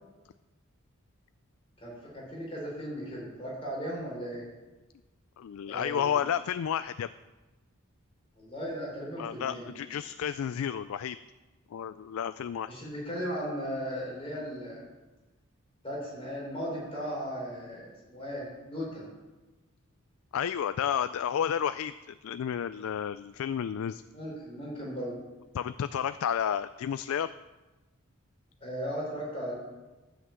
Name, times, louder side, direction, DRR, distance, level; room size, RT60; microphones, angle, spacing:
voice 1, 1.8-4.5 5.7-6.2 8.4-9.7 12.7-14.8 15.8-19.0 24.1-25.2 28.6-29.5, equal, 25° left, -4 dB, 4.3 m, -37 dB
voice 2, 5.4-7.1 9.2-11.2 11.7-12.7 20.3-24.0 25.5-27.3, left 8 dB, 75° left, 13 dB, 0.3 m, -31 dB
12.5 x 5.8 x 7.7 m, 1.1 s
head